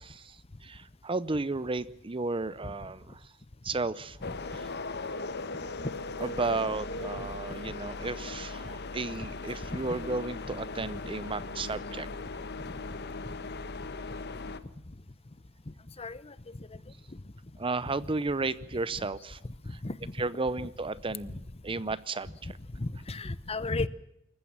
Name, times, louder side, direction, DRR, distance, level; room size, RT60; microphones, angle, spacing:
voice 1, 0.0-3.3 3.6-4.2 4.5-4.6 6.2-12.1 17.6-19.4 20.2-21.4 21.6-22.5, right 3 dB, 25° right, 17 dB, 0.7 m, -33 dB
sound 1, 4.2-14.6, left 3 dB, 50° left, 1.3 m, -38 dB
voice 2, 16.0-16.3 19.7-20.1 20.6-20.7 21.2-21.3 22.8-23.9, left 2 dB, 30° left, 16 dB, 0.8 m, -34 dB
27.0 x 15.0 x 7.4 m, 0.82 s
head